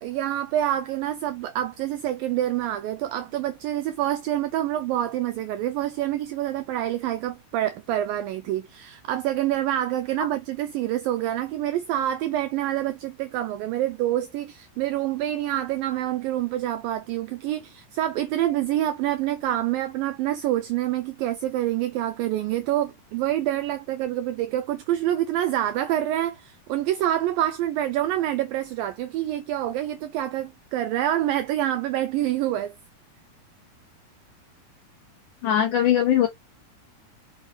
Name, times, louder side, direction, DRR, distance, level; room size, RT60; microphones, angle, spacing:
voice 1, 0.0-32.7, right 13 dB, 85° right, 2.0 m, -27 dB
voice 2, 35.4-36.3, left 10 dB, 75° left, 1.9 m, -20 dB
6.1 x 5.5 x 2.8 m
omnidirectional pair, 4.8 m